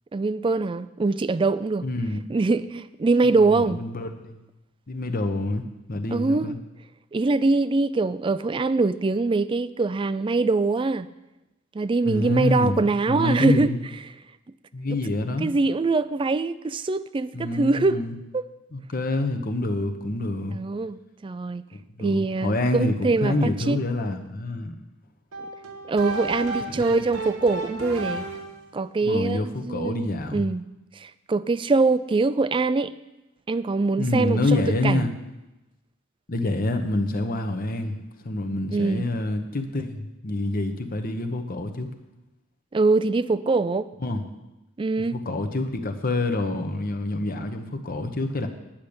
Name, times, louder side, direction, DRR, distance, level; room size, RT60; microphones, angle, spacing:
voice 1, 0.1-1.9 2.3-3.8 6.1-6.6 7.1-11.1 11.7-13.7 15.4-18.0 18.3-18.5 20.5-21.6 22.0-23.8 25.9-28.3 28.7-30.6 31.0-32.9 33.5-34.4 34.8-35.1 38.7-39.1 42.7-43.9 44.8-45.2, right 3 dB, 25° right, 15 dB, 0.3 m, -23 dB
voice 2, 1.8-2.2 3.5-4.4 4.9-6.6 12.0-13.8 14.7-15.5 17.3-18.1 18.7-20.6 21.7-24.7 26.7-27.0 29.0-30.5 34.0-35.1 36.3-38.0 38.2-41.9 44.0-44.2 45.0-48.5, left 2 dB, 40° left, 6 dB, 0.9 m, -27 dB
sound 1, 25.3-28.7, right 2 dB, 80° right, 1.3 m, -33 dB
10.5 x 6.5 x 8.7 m, 0.98 s
head